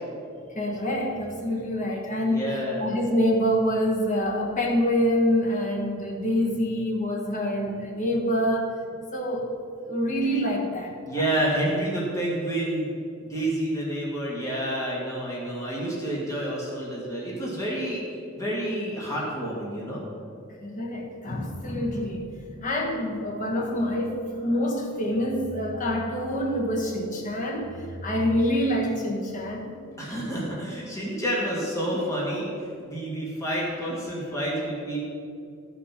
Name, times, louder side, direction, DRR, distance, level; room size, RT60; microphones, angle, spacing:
voice 1, 0.5-2.5 2.8-8.7 9.1-9.5 9.9-11.3 20.6-22.3 22.6-29.7, equal, 40° left, 0 dB, 1.4 m, -26 dB
voice 2, 2.2-2.8 11.0-12.9 13.3-18.0 18.3-20.0 30.0-32.5 32.8-35.0, right 1 dB, 15° left, -5 dB, 2.0 m, -29 dB
12.5 x 5.8 x 5.8 m, 2.4 s
head